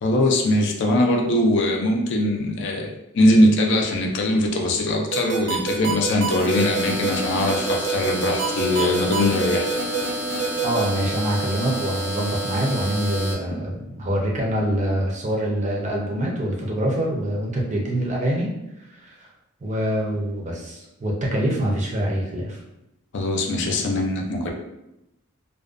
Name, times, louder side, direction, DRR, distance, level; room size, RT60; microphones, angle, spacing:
voice 1, 0.0-9.7 23.1-24.5, left 1 dB, 55° left, 1 dB, 0.4 m, -21 dB
sound 1, 5.1-10.8, right 6 dB, 80° right, 0.5 m, -26 dB
sound 2, 6.5-13.3, right 1 dB, 15° left, 0.8 m, -29 dB
voice 2, 10.6-18.5 19.0-19.3 19.6-22.6, right 1 dB, 35° right, -2 dB, 0.5 m, -25 dB
2.4 x 2.2 x 2.4 m, 0.88 s
head